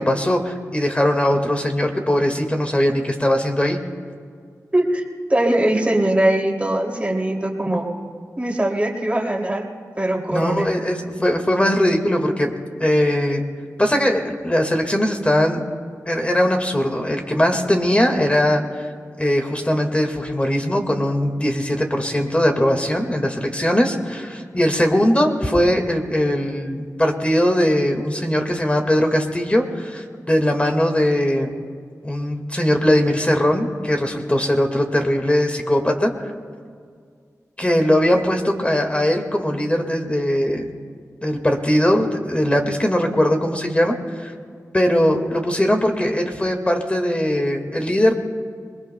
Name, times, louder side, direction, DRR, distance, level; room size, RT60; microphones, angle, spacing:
voice 1, 0.0-3.8 10.3-12.5 12.8-13.4 13.8-15.6 16.1-18.8 19.2-31.5 32.0-36.3 37.6-40.7 41.2-44.3 44.7-48.1, left 1 dB, 20° left, 3 dB, 1.8 m, -20 dB
voice 2, 4.7-5.0 5.3-7.9 8.4-9.7 10.0-10.7, right 1 dB, 20° right, 0 dB, 2.6 m, -21 dB
27.0 x 21.0 x 2.2 m, 2.1 s
wide cardioid pair, 60°, 6 cm